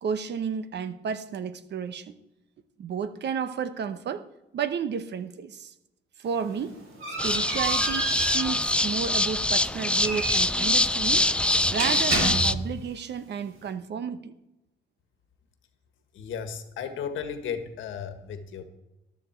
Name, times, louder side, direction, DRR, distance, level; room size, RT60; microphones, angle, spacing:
voice 1, 0.0-2.1 2.8-4.2 4.5-5.7 6.2-6.8 7.1-8.1 8.3-11.3 11.7-14.3, right 7 dB, 60° right, 12 dB, 1.0 m, -32 dB
sound 1, 6.2-12.9, right 3 dB, 90° right, 4.2 m, -33 dB
sound 2, 7.2-12.5, left 1 dB, 5° left, 0.4 m, -24 dB
voice 2, 16.1-18.6, left 7 dB, 80° left, 8 dB, 1.6 m, -35 dB
13.0 x 11.5 x 4.5 m, 0.95 s
cardioid pair, 90°, 20 cm